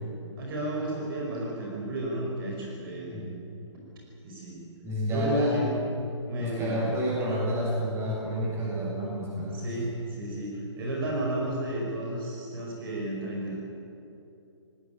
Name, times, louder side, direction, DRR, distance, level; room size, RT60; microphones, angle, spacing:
voice 1, 0.3-3.1 4.2-4.6 5.1-5.8 6.3-6.8 9.5-13.6, right 1 dB, 45° right, -2 dB, 5.4 m, -32 dB
voice 2, 4.8-5.6 6.4-9.7, equal, 15° right, -5 dB, 7.6 m, -30 dB
19.5 x 19.0 x 9.4 m, 2.7 s
hypercardioid pair, 150°, 16 cm